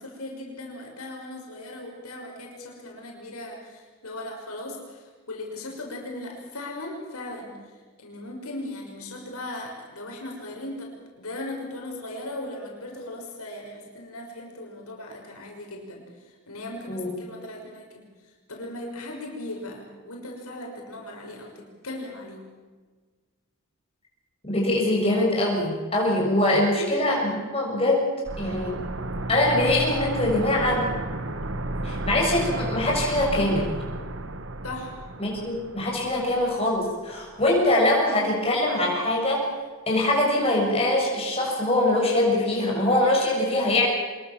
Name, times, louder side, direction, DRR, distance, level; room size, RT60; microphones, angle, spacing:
voice 1, 0.0-7.6 8.0-17.9 18.5-22.4 26.4-26.9 34.6-34.9 36.1-36.3, left 1 dB, 85° left, 0 dB, 5.8 m, -38 dB
voice 2, 24.4-28.1 28.4-28.7 29.3-30.9 31.8-33.7 35.2-39.5 39.9-43.8, left 1 dB, 25° left, -2 dB, 7.0 m, -23 dB
sound 1, 28.3-37.0 37.2-37.3, right 2 dB, 60° right, 1.3 m, -32 dB
25.0 x 22.0 x 7.5 m, 1.4 s
head